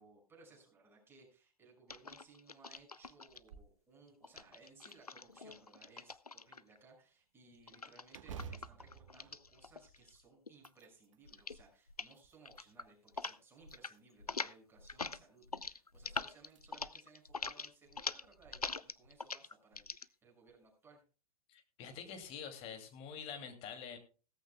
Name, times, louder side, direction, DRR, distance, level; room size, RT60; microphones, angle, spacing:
voice 1, 0.0-21.0, right 4 dB, 10° right, 0 dB, 6.2 m, -62 dB
sound 1, 1.9-3.4 4.2-6.8 7.7-10.2 10.5-10.9 11.3-11.6 11.9-12.1 12.5-13.4 13.6-13.9 14.2-20.1, left 4 dB, 85° left, 0.6 m, -44 dB
sound 2, 3.3-3.8 4.2-4.3 4.9-5.7 8.1-10.1 10.5-11.2 11.9-12.7 13.6-14.3 15.8-15.9 16.4-16.6 17.1-17.2 18.2-18.5, right 6 dB, 55° right, 1.3 m, -52 dB
voice 2, 21.5-24.0, left 7 dB, 30° left, 6 dB, 2.7 m, -46 dB
16.5 x 14.5 x 2.3 m, 0.35 s
figure-of-eight pair, 105°, 19 cm